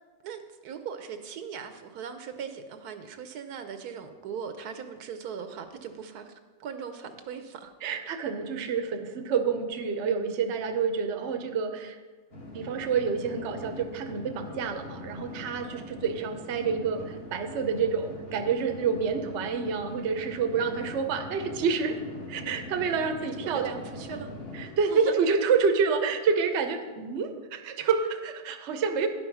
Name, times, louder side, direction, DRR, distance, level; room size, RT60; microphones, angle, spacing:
voice 1, 0.2-7.7 15.6-15.9 23.4-24.3 24.9-25.1, right 7 dB, 80° right, 7 dB, 1.2 m, -39 dB
voice 2, 7.8-12.0 12.5-22.0 22.3-23.8 24.5-29.1, right 5 dB, 55° right, 7 dB, 1.0 m, -28 dB
sound 1, 12.3-24.7, left 1 dB, 40° left, 1.9 m, -42 dB
10.5 x 5.5 x 5.9 m, 1.4 s
omnidirectional pair, 1.6 m